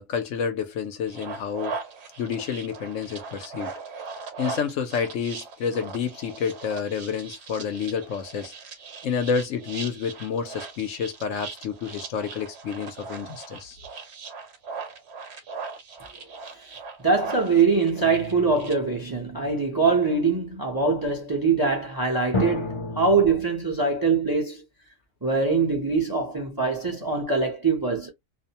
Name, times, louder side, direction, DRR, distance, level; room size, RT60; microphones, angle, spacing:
voice 1, 0.0-1.8 2.2-3.7 4.4-8.5 9.0-13.8, left 6 dB, 70° left, 1.0 m, -29 dB
sound 1, 1.1-18.7, right 5 dB, 60° right, 0.9 m, -39 dB
voice 2, 17.0-24.6 25.2-28.1, right 4 dB, 25° right, 0.6 m, -23 dB
sound 2, 18.0-19.8 22.3-23.3, left 2 dB, 30° left, 0.6 m, -32 dB
2.5 x 2.1 x 2.8 m
omnidirectional pair, 1.4 m